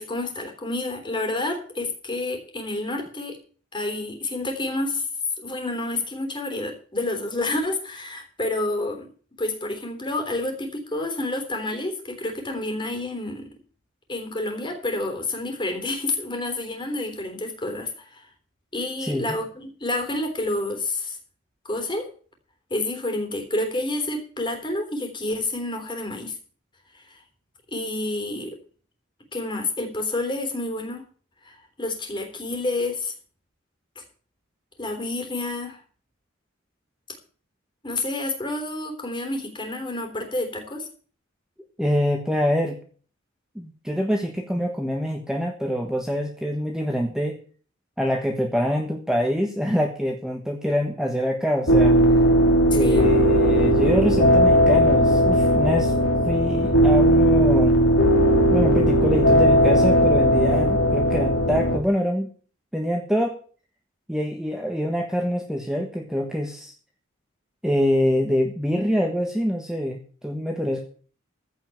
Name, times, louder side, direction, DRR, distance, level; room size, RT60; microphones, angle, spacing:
voice 1, 0.0-3.4 3.7-5.1 5.4-9.1 9.4-13.5 14.1-18.2 18.7-21.2 21.7-22.1 22.7-26.4 26.9-27.2 27.7-28.6 29.3-31.0 31.4-33.1 34.8-35.8 37.8-40.9 52.7-53.1, left 2 dB, 25° left, 5 dB, 3.5 m, -29 dB
voice 2, 19.1-19.4 41.8-42.8 43.5-47.4 48.0-52.0 52.7-55.9 56.2-57.8 58.5-62.3 62.7-63.4 64.1-66.7 67.6-70.8, equal, 5° right, 2 dB, 1.4 m, -25 dB
sound 1, 51.7-61.8, equal, 85° left, 2.9 m, -18 dB
15.0 x 5.7 x 9.1 m, 0.43 s
head